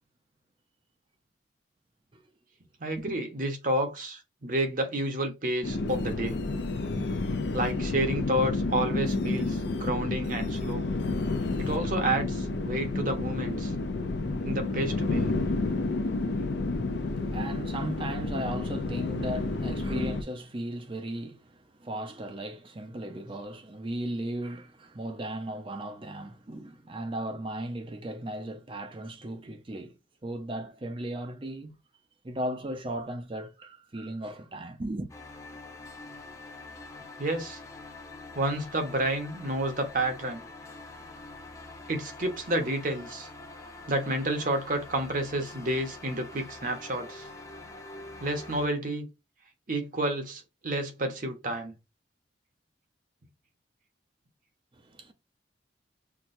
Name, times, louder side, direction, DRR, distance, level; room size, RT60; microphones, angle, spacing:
voice 1, 2.8-6.4 7.5-10.9 11.6-13.7 14.4-15.3 37.2-37.6 38.3-40.4 41.9-43.3 43.9-47.3 48.2-49.1 49.7-51.7, right 1 dB, 45° right, 0.9 m, -30 dB
sound 1, 5.6-20.2, left 2 dB, 65° left, 0.5 m, -30 dB
voice 2, 16.9-30.0 30.2-31.8 32.2-35.1 54.7-55.1, right 1 dB, 30° right, 0.5 m, -36 dB
sound 2, 35.1-48.7, left 2 dB, 15° left, 0.6 m, -45 dB
5.9 x 2.3 x 2.6 m
head